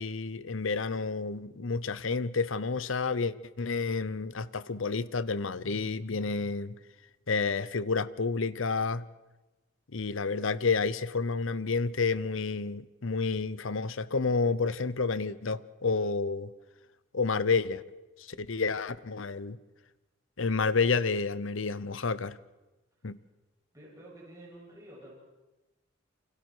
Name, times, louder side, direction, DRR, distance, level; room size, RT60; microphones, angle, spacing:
voice 1, 0.0-6.8 7.3-9.0 9.9-16.5 17.1-17.8 18.2-19.6 20.4-22.4 23.0-23.2, left 4 dB, 70° left, 0.9 m, -30 dB
voice 2, 23.7-25.1, right 1 dB, 15° right, 7.7 m, -50 dB
29.0 x 25.0 x 4.7 m
head